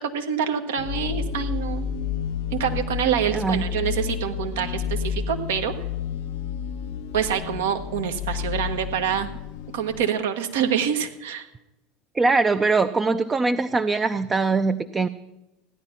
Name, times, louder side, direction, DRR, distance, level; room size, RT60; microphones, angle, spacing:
voice 1, 0.0-1.9 2.5-5.7 7.1-9.3 9.7-11.5, right 8 dB, 70° right, 6 dB, 1.4 m, -26 dB
sound 1, 0.8-10.1, left 8 dB, 60° left, 0.5 m, -30 dB
voice 2, 3.3-3.6 12.1-15.1, right 3 dB, 20° right, 9 dB, 0.6 m, -22 dB
15.5 x 10.5 x 5.8 m, 0.96 s
figure-of-eight pair, 75°, 0 cm